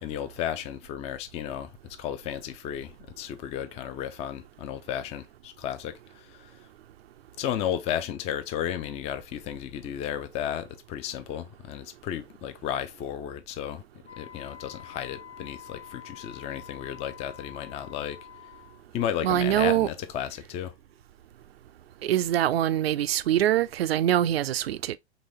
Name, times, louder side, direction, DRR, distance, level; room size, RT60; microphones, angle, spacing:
voice 1, 0.0-6.6 7.4-13.8 14.2-18.2 18.9-20.7, left 10 dB, 20° left, 0.4 m, -33 dB
Wind instrument woodwind instrument, 14.0-18.8, left 12 dB, 85° left, 0.7 m, -47 dB
voice 2, 19.2-19.9 22.0-25.0, right 12 dB, 65° right, 0.4 m, -24 dB
4.0 x 3.2 x 3.2 m
figure-of-eight pair, 95°, 33 cm